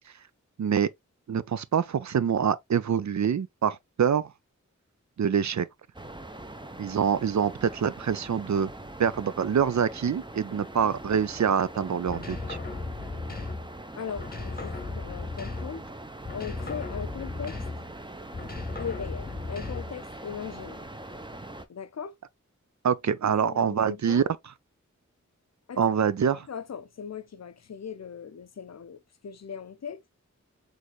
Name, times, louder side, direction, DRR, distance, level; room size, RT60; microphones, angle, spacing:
voice 1, 0.6-0.9 1.3-4.3 5.2-5.7 6.8-8.7 9.0-12.6 22.8-24.2 25.8-26.5, right 7 dB, 65° right, 0.5 m, -25 dB
sound 1, 5.9-21.7, right 2 dB, 15° right, 0.7 m, -42 dB
sound 2, 12.1-13.8 14.2-15.9 16.2-18.0 18.3-20.1, left 3 dB, 30° left, 0.9 m, -36 dB
voice 2, 13.9-15.8 16.3-17.6 18.8-20.9 21.7-22.1 23.4-24.3 25.7-25.8 26.5-30.0, left 7 dB, 55° left, 0.5 m, -39 dB
4.2 x 3.3 x 3.0 m
cardioid pair, 45°, 31 cm